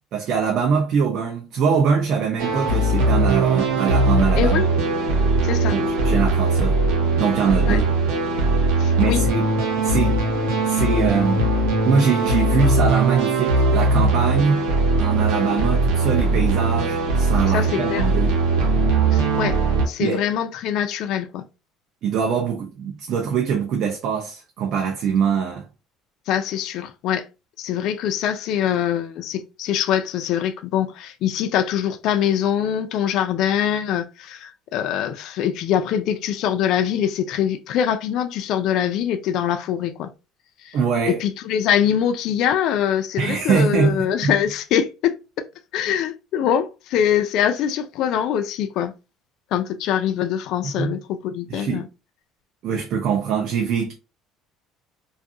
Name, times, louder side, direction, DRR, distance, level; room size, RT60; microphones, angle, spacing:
voice 1, 0.1-4.6 5.7-6.8 7.2-7.9 9.0-9.5 9.8-10.2 10.6-11.5 11.8-14.7 15.0-18.3 20.0-20.3 22.0-25.6 40.7-41.2 43.2-44.3 50.6-50.9 51.5-51.9 52.6-53.9, right 6 dB, 50° right, 0.5 m, -23 dB
sound 1, 2.4-19.9, right 2 dB, 80° right, 0.9 m, -20 dB
voice 2, 4.4-4.7 5.4-5.8 7.6-7.8 8.8-9.2 17.5-18.0 19.1-19.6 19.9-21.4 26.3-27.2 27.6-40.1 40.6-40.8 41.1-45.1 45.7-48.9 49.5-51.9, left 9 dB, 60° left, 0.3 m, -23 dB
2.5 x 2.4 x 2.5 m
cardioid pair, 140°, 0 cm